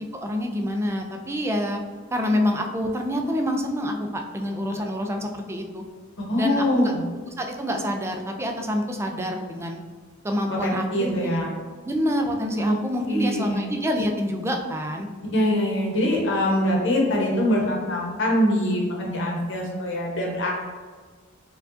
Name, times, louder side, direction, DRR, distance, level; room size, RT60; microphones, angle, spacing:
voice 1, 0.1-1.8 2.1-5.8 6.4-6.9 7.4-9.8 10.2-11.4 11.8-15.1, equal, 15° right, 3 dB, 0.3 m, -27 dB
voice 2, 6.3-7.0 10.6-11.5 12.6-12.8 13.1-13.6 15.3-20.5, equal, 65° left, -2 dB, 0.9 m, -23 dB
4.6 x 2.4 x 2.5 m, 1.5 s
head